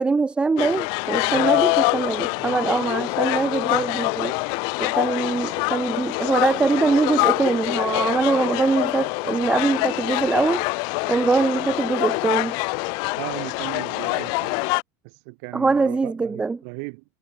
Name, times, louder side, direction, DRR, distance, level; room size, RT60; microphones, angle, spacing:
voice 1, 0.0-4.3 4.8-10.6 11.1-12.5 15.5-16.6, right 4 dB, 10° right, 1.1 m, -23 dB
sound 1, 0.6-14.8, left 36 dB, 50° left, 0.8 m, -25 dB
voice 2, 1.3-1.7 2.4-2.6 13.2-14.6 15.0-17.0, right 38 dB, 55° right, 2.7 m, -36 dB
supercardioid pair, 140°, 9 cm